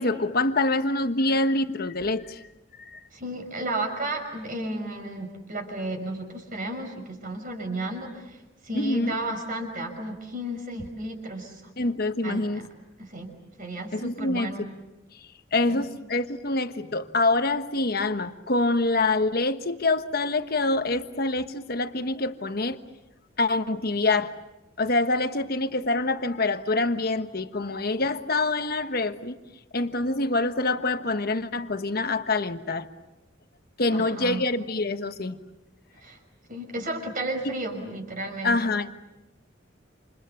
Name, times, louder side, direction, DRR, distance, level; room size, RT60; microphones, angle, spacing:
voice 1, 0.0-2.4 2.8-3.0 8.7-9.2 11.8-12.7 13.9-14.5 15.5-22.8 23.4-24.3 24.8-29.4 29.7-32.9 33.8-35.4 38.4-38.9, left 2 dB, 50° left, 9 dB, 1.3 m, -26 dB
voice 2, 3.1-11.6 12.2-12.7 13.0-13.3 13.6-14.6 15.6-15.8 33.9-34.4 36.0-36.2 36.5-38.6, right 1 dB, 45° right, 4 dB, 5.8 m, -33 dB
29.0 x 28.0 x 7.1 m, 0.99 s
head